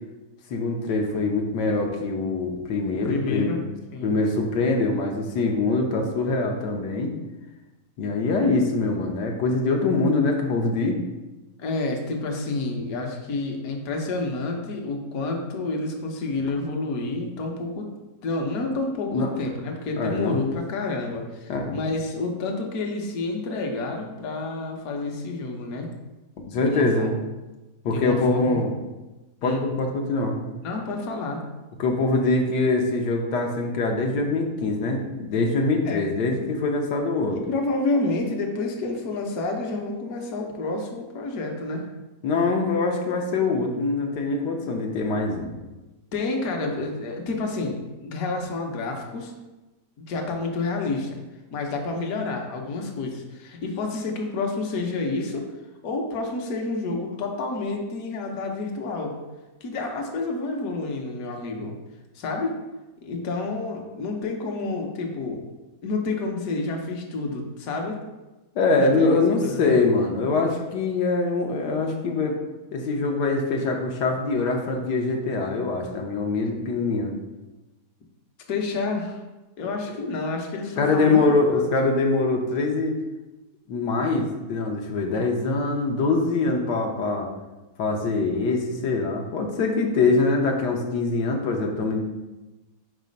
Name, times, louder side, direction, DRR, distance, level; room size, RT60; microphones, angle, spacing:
voice 1, 0.5-3.5 4.0-7.1 8.0-11.0 19.1-19.3 20.0-20.5 21.5-21.8 26.5-27.1 27.8-28.7 29.4-30.4 31.8-37.4 42.2-45.5 68.5-72.4 72.7-77.1 80.8-82.9 83.7-87.3 87.8-92.0, left 3 dB, 90° left, 1 dB, 1.4 m, -23 dB
voice 2, 3.0-3.6 3.9-4.2 11.6-17.9 18.2-25.9 26.6-27.2 27.9-28.6 29.4-29.6 30.6-31.4 35.8-36.1 37.3-41.9 46.1-49.3 50.1-51.2 51.5-55.5 55.8-59.2 59.6-61.8 62.1-62.6 63.0-65.4 65.8-68.0 68.8-69.7 78.5-79.2 79.6-81.6, left 3 dB, 65° left, 1 dB, 1.3 m, -29 dB
4.6 x 4.1 x 5.2 m, 1.1 s
omnidirectional pair, 1.8 m